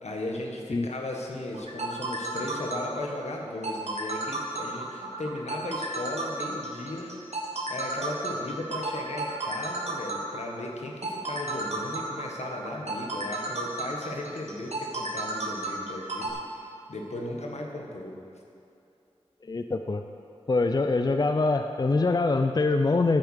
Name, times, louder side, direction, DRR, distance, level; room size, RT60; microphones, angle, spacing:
voice 1, 0.0-7.1 7.7-18.1, left 1 dB, 80° left, 0 dB, 1.4 m, -36 dB
sound 1, 1.5-16.3, right 2 dB, 75° right, 1.4 m, -33 dB
voice 2, 19.5-20.0 20.5-23.2, left 3 dB, 40° left, 7 dB, 0.4 m, -24 dB
10.5 x 6.8 x 6.4 m, 2.6 s
wide cardioid pair, 50°, 11 cm